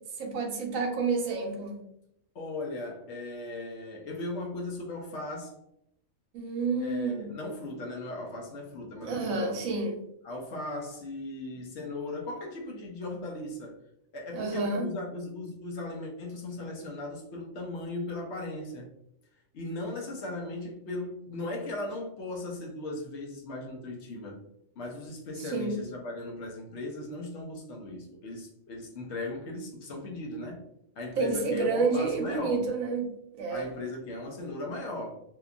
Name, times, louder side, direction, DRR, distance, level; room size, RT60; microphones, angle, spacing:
voice 1, 0.2-1.8 6.3-7.3 9.0-10.0 14.3-14.9 25.4-25.8 31.2-33.7, right 4 dB, 80° right, 2 dB, 1.0 m, -29 dB
voice 2, 2.3-5.6 6.8-9.6 10.2-13.8 14.1-18.9 19.5-24.4 24.8-30.7 31.0-32.6 33.5-35.2, left 2 dB, 65° left, 0 dB, 0.8 m, -37 dB
2.8 x 2.2 x 2.4 m, 0.78 s
omnidirectional pair, 1.4 m